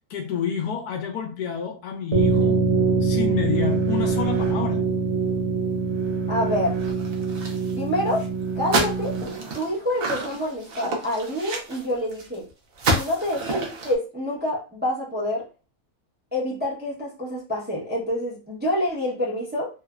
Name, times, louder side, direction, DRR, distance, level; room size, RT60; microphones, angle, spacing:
voice 1, 0.1-2.7 3.0-4.9, left 7 dB, 90° left, 4 dB, 1.2 m, -29 dB
sound 1, 2.1-9.6, right 4 dB, 75° right, 1.3 m, -24 dB
voice 2, 6.3-6.8 7.7-8.2 8.6-9.1 9.5-12.4 12.9-15.4 16.3-19.7, left 1 dB, 10° right, -5 dB, 0.5 m, -27 dB
sound 2, 6.8-7.8 8.1-8.3 8.7-12.4 12.8-14.0, right 2 dB, 60° right, 0.6 m, -29 dB
3.1 x 2.0 x 2.3 m, 0.32 s
omnidirectional pair, 1.6 m